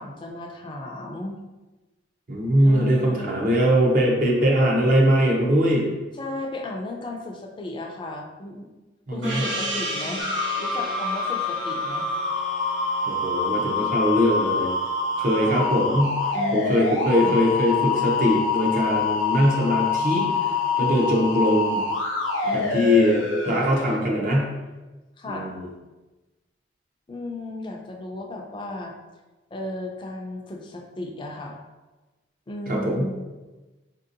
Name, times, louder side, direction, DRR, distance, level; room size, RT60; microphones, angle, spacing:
voice 1, 0.0-1.4 2.6-3.4 6.1-8.7 9.1-10.2 10.6-12.1 15.4-15.8 16.3-17.4 22.4-23.6 25.2-25.6 27.1-28.9 29.5-31.6 32.5-33.2, left 1 dB, 25° left, 1 dB, 0.4 m, -35 dB
voice 2, 2.3-5.9 9.1-9.4 13.1-14.7 15.2-16.2 16.5-21.8 22.5-24.5 25.3-25.7 32.7-33.1, equal, 45° right, -2 dB, 0.6 m, -21 dB
Gong, 9.2-14.3, right 1 dB, 75° right, 0.9 m, -33 dB
sound 1, 10.2-24.0, left 4 dB, 90° left, 0.5 m, -26 dB
4.0 x 2.7 x 2.5 m, 1.2 s
head